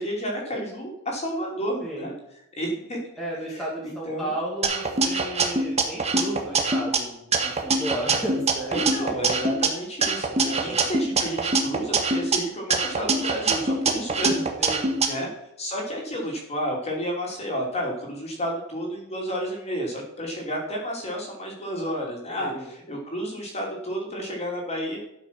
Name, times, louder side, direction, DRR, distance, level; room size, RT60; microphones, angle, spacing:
voice 1, 0.0-2.1 2.6-3.0 3.5-4.3 8.7-15.3 15.6-25.0, equal, 30° left, -1 dB, 2.8 m, -31 dB
voice 2, 3.2-8.9 9.1-9.3 10.4-10.8 14.6-15.3 22.4-22.7, equal, ahead, -5 dB, 2.1 m, -34 dB
sound 1, 4.6-7.0 7.3-9.7 10.0-12.4 12.7-15.1, right 3 dB, 30° right, 1.3 m, -24 dB
12.0 x 6.1 x 5.9 m, 0.83 s
head